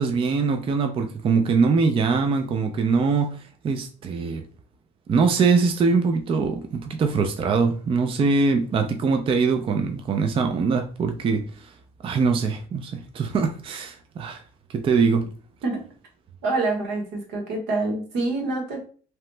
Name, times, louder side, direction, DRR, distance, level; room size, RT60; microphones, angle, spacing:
voice 1, 0.0-4.4 5.1-11.7 12.0-14.4 14.7-15.2, right 4 dB, 30° right, 0.4 m, -22 dB
voice 2, 16.4-18.8, right 2 dB, 85° right, 1.0 m, -26 dB
2.8 x 2.0 x 3.2 m
cardioid pair, 110°, 17 cm